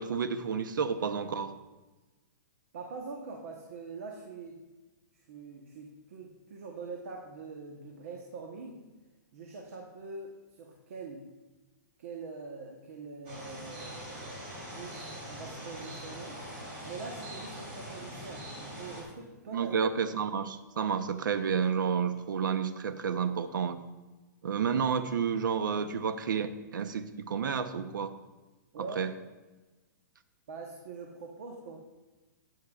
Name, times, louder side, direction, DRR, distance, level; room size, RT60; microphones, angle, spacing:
voice 1, 0.0-1.5 19.5-23.8 24.4-28.1 29.0-29.1, right 6 dB, 85° right, 11 dB, 0.8 m, -30 dB
voice 2, 2.7-4.6 5.1-8.8 9.3-11.2 12.0-16.4 16.9-19.8 28.7-29.0 30.5-31.8, right 4 dB, 45° right, 0 dB, 1.1 m, -44 dB
sound 1, 13.2-19.0, equal, 30° right, 3.2 m, -43 dB
13.0 x 9.1 x 2.4 m, 1.2 s
hypercardioid pair, 180°, 10 cm